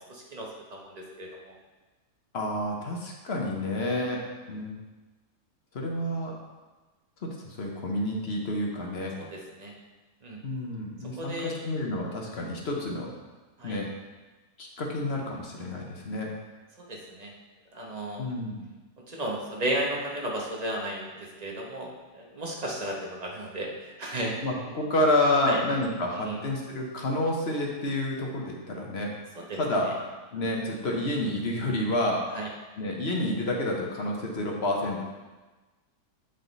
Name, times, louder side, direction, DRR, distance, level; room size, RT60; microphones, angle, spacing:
voice 1, 0.1-1.5 9.2-9.7 10.2-10.4 11.2-11.6 13.6-13.8 16.8-17.3 17.7-18.2 19.1-24.4 25.4-25.6 26.2-26.4 29.4-29.6 29.8-29.9 32.3-32.5, right 1 dB, 30° right, -1 dB, 0.9 m, -34 dB
voice 2, 2.3-4.2 4.5-4.8 5.7-6.3 7.2-9.1 10.4-13.1 13.6-13.9 14.6-16.3 18.2-18.6 24.4-29.1 29.6-29.9 30.3-32.4 32.8-35.0, left 1 dB, 45° left, -1 dB, 1.0 m, -29 dB
8.5 x 3.8 x 3.9 m, 1.2 s
omnidirectional pair, 1.7 m